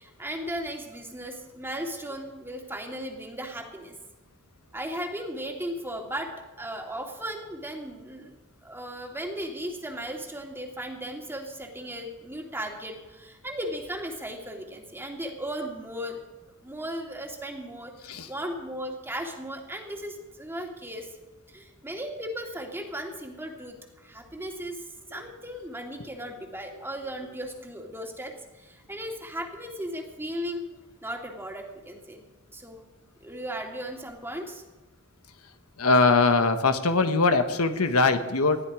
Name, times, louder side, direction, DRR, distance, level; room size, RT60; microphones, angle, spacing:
voice 1, 0.0-3.9 4.7-8.3 8.6-16.2 16.6-21.1 21.5-24.8 25.1-30.7 31.0-32.2 32.5-32.8 33.2-34.6, equal, 10° right, 2 dB, 2.4 m, -36 dB
voice 2, 35.8-38.6, left 3 dB, 80° left, 8 dB, 1.3 m, -22 dB
20.5 x 13.5 x 4.9 m, 1.2 s
head